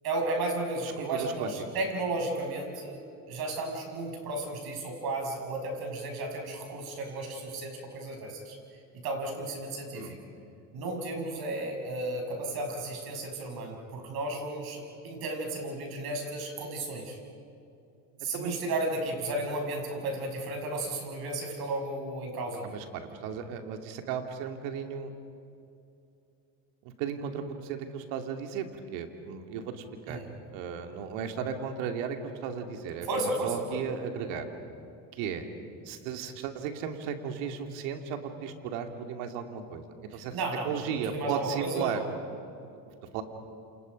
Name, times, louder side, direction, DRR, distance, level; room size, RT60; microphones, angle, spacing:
voice 1, 0.0-8.5 9.0-10.1 10.7-17.2 18.2-22.7 30.1-30.3 33.0-33.8 40.1-42.1, right 2 dB, 50° right, 2 dB, 6.4 m, -34 dB
voice 2, 0.8-1.5 9.9-10.1 18.3-18.6 22.6-25.1 26.8-30.2 30.5-34.5 35.1-35.5 35.9-39.9 40.1-42.0 43.1-43.2, right 7 dB, 70° right, 5 dB, 2.6 m, -35 dB
28.5 x 28.5 x 5.3 m, 2.7 s
hypercardioid pair, 85°, 46 cm